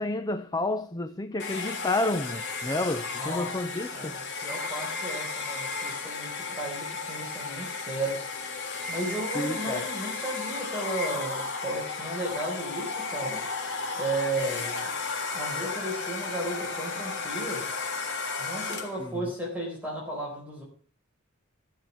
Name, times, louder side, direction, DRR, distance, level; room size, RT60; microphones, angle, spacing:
voice 1, 0.0-4.1 9.3-9.9 19.0-19.2, left 2 dB, 20° left, 0.7 m, -30 dB
Domestic sounds home sounds, 1.4-19.1, left 4 dB, 60° left, 3.5 m, -34 dB
voice 2, 3.2-3.6 3.9-8.3 8.9-13.4 14.0-14.9 15.3-17.7 18.4-20.6, right 1 dB, 10° right, 4.6 m, -34 dB
15.0 x 7.5 x 7.4 m
head